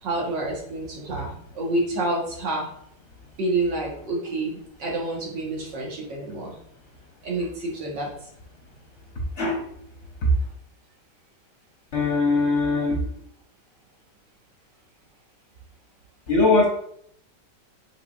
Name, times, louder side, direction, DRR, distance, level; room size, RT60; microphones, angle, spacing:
voice 1, 0.0-2.7 3.4-6.6 7.2-8.3, right 2 dB, 85° right, -3 dB, 2.0 m, -28 dB
voice 2, 9.4-9.7 10.2-10.3 11.9-13.1 16.3-16.7, left 2 dB, 50° left, -1 dB, 0.9 m, -21 dB
5.4 x 3.9 x 2.4 m, 0.68 s
omnidirectional pair, 1.9 m